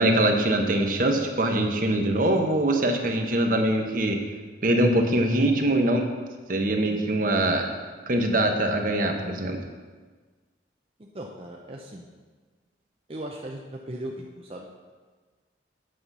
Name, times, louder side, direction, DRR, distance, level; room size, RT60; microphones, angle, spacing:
voice 1, 0.0-4.2 4.6-6.1 6.5-7.7 8.1-9.6, right 1 dB, 45° right, 4 dB, 1.0 m, -23 dB
voice 2, 11.0-12.1 13.1-14.6, right 1 dB, 30° right, 0 dB, 0.6 m, -38 dB
8.7 x 5.6 x 6.7 m, 1.4 s
head